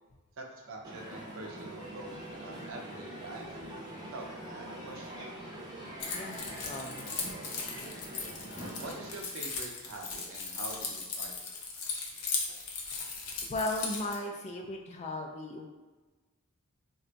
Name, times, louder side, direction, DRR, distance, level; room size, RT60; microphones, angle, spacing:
voice 1, 0.4-3.5 4.1-5.4 8.8-11.5 12.5-12.6, right 2 dB, 60° right, 0 dB, 0.5 m, -45 dB
Piano, 0.6-11.0, right 1 dB, 10° left, 0.9 m, -55 dB
Crowd, 0.8-9.2, right 1 dB, 20° right, 0.6 m, -44 dB
Keys jangling, 6.0-14.1, left 4 dB, 80° left, 0.6 m, -38 dB
voice 2, 6.6-7.1 13.4-15.7, left 1 dB, 30° left, 2 dB, 0.3 m, -36 dB
2.5 x 2.2 x 3.9 m, 1.2 s
head